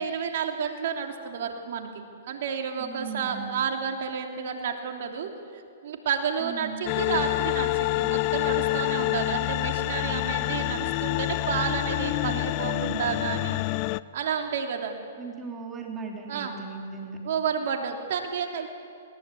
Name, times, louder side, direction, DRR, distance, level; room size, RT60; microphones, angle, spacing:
voice 1, 0.0-1.9 2.3-5.3 5.8-13.6 14.1-14.9 16.3-16.5 17.2-18.7, right 7 dB, 60° right, 3 dB, 3.0 m, -30 dB
voice 2, 2.8-3.5 6.4-6.8 12.2-13.2 15.2-17.2, right 5 dB, 20° right, 1 dB, 3.4 m, -38 dB
sound 1, 6.9-14.0, left 20 dB, 40° left, 0.4 m, -27 dB
20.5 x 20.0 x 8.5 m, 2.3 s
hypercardioid pair, 130°, 0 cm